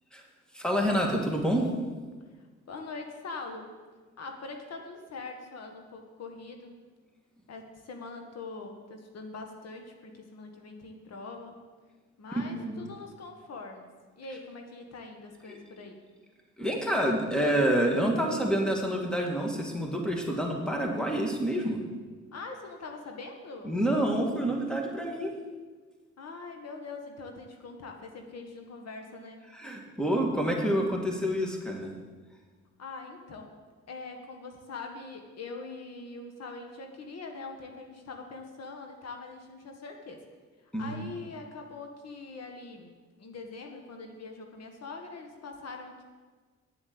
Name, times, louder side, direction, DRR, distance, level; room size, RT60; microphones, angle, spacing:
voice 1, 0.5-1.7 12.3-12.8 16.6-21.8 23.6-25.3 29.5-31.9 40.7-40.9, equal, 5° left, 1 dB, 2.1 m, -28 dB
voice 2, 2.4-3.7 4.2-6.8 7.5-11.6 12.2-13.9 14.2-16.0 22.3-23.7 26.2-29.4 32.8-33.5 33.9-40.3 40.6-42.9 43.2-46.0, left 3 dB, 55° left, 4 dB, 1.5 m, -43 dB
9.6 x 7.9 x 7.7 m, 1.4 s
cardioid pair, 90°, 30 cm